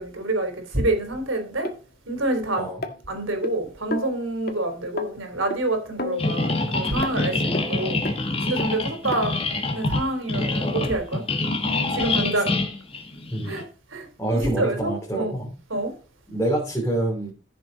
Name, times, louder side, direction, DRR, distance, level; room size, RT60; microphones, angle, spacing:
voice 1, 0.0-1.7 2.1-2.7 3.1-8.0 8.4-9.4 9.7-11.2 11.9-12.6 13.4-13.6 13.9-14.9 15.2-15.4 15.7-15.9, right 2 dB, 85° right, 3.8 m, -27 dB
sound 1, 1.6-1.7 2.8-3.5 3.9-4.1 4.5-4.6 5.0-5.1 5.5-5.6 6.0-6.6 7.0-7.1 7.5-7.6 8.0-8.2 8.6-8.7 9.1-9.2 9.8-9.9, left 2 dB, 50° left, 1.7 m, -31 dB
sound 2, 6.2-13.6, left 2 dB, 30° left, 1.7 m, -26 dB
voice 2, 13.3-13.7 14.2-15.5 16.3-17.3, right 1 dB, 10° left, 3.4 m, -26 dB
15.0 x 6.9 x 4.1 m
head